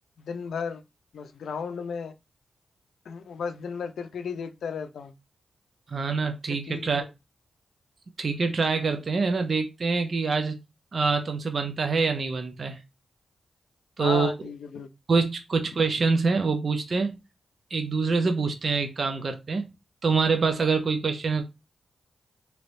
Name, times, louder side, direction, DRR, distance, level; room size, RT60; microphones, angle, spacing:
voice 1, 0.2-0.8 1.1-2.1 3.1-5.1 6.5-6.9 14.0-14.9, left 6 dB, 80° left, 0.4 m, -34 dB
voice 2, 5.9-7.0 8.2-10.5 10.9-12.8 14.0-14.3 15.1-17.2 17.7-19.7 20.0-21.4, right 4 dB, 60° right, 0.6 m, -25 dB
3.2 x 3.0 x 2.5 m
supercardioid pair, 45°, 0 cm